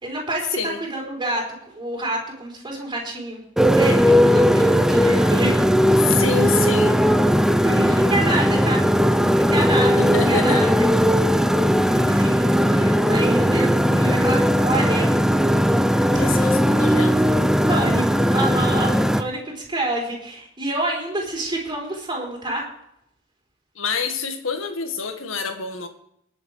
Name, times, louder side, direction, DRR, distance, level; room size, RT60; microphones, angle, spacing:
voice 1, 0.0-3.4 3.7-6.1 7.6-8.8 9.1-10.9 11.9-15.2 16.2-16.5 17.7-22.7, right 1 dB, 25° right, -2 dB, 4.4 m, -28 dB
Motorcycle, 3.6-19.2, equal, 5° right, 0.5 m, -18 dB
voice 2, 6.0-7.0 9.9-10.6 16.1-17.3 23.8-25.9, left 5 dB, 90° left, 6 dB, 1.8 m, -27 dB
20.5 x 7.7 x 4.9 m, 0.73 s
head